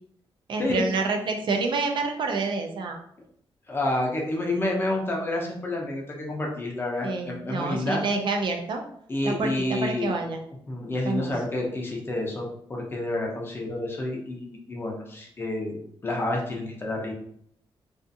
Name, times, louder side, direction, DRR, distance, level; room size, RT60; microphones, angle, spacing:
voice 1, 0.5-3.0 7.0-8.8 9.2-10.4 11.1-11.3, right 3 dB, 55° right, 3 dB, 0.4 m, -28 dB
voice 2, 3.7-8.0 9.1-10.1 10.7-17.1, left 1 dB, 25° left, -1 dB, 0.5 m, -29 dB
2.4 x 2.4 x 2.6 m, 0.68 s
wide cardioid pair, 170°, 10 cm